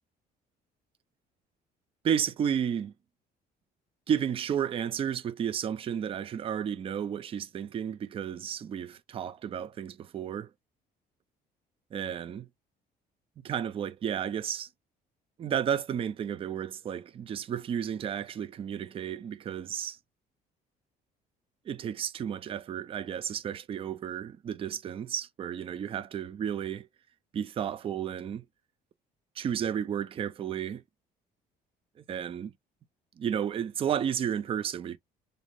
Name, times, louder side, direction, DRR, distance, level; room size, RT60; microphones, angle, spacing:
voice 1, 2.0-2.9 4.1-10.5 11.9-12.5 13.4-14.7 15.4-20.0 21.7-26.9 27.3-28.4 29.4-30.8 32.0-32.5 33.2-35.0, right 8 dB, 35° right, 0.3 m, -32 dB
2.6 x 2.0 x 3.0 m
cardioid pair, 110°, 17 cm